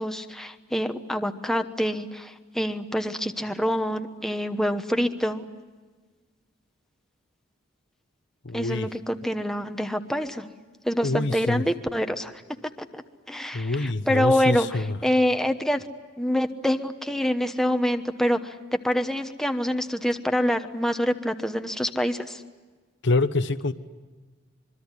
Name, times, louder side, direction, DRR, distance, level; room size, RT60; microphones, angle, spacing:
voice 1, 0.0-5.4 8.5-10.4 10.8-12.3 12.8-13.0 13.3-15.9 16.2-18.5 18.8-22.4, equal, ahead, 7 dB, 1.1 m, -26 dB
voice 2, 8.4-8.9 11.0-11.6 13.5-15.0 23.0-23.7, left 2 dB, 65° left, 10 dB, 1.0 m, -25 dB
25.5 x 23.0 x 9.8 m, 1.4 s
head